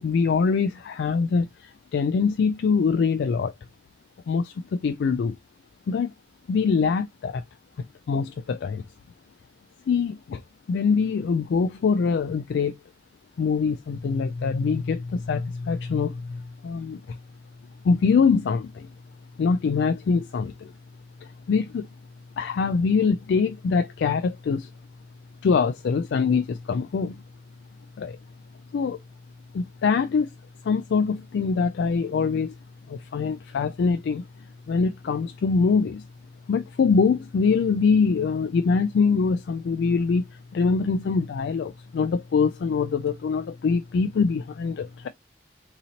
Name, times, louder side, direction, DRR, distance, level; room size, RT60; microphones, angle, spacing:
voice 1, 0.0-3.5 4.3-5.4 5.9-6.1 6.5-7.4 7.8-8.8 9.9-10.4 10.7-12.8 13.4-17.2 17.8-18.9 19.4-20.7 21.2-21.9 22.4-24.7 25.4-27.2 28.0-28.2 28.7-29.0 29.5-30.3 30.6-32.5 32.9-34.3 34.7-36.0 36.5-40.2 40.5-45.1, left 5 dB, 80° left, 0.3 m, -24 dB
3.9 x 2.8 x 2.8 m
head